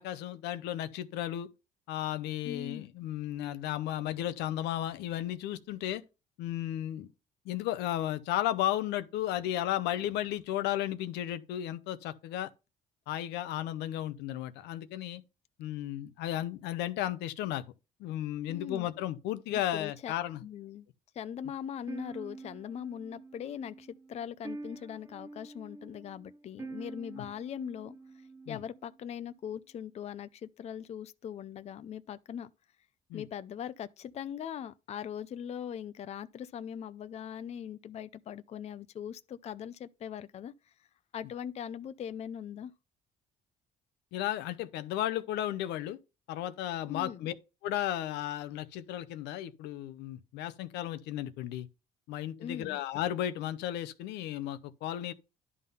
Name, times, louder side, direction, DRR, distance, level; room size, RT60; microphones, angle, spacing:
voice 1, 0.0-1.5 1.9-6.0 6.4-7.1 7.5-12.5 13.1-15.2 15.6-17.6 18.0-20.4 28.5-28.6 33.1-33.3 44.1-46.0 46.3-47.3 47.6-51.7 52.1-55.1, left 12 dB, 85° left, 0.7 m, -34 dB
voice 2, 2.4-2.9 18.5-18.9 19.5-20.1 20.4-20.9 21.1-28.0 28.5-32.5 33.1-40.7 41.1-42.7 46.9-47.3 52.4-52.8, left 9 dB, 40° left, 0.5 m, -41 dB
sound 1, 21.9-29.0, right 3 dB, 15° right, 1.3 m, -47 dB
11.0 x 3.7 x 5.4 m
cardioid pair, 110°, 17 cm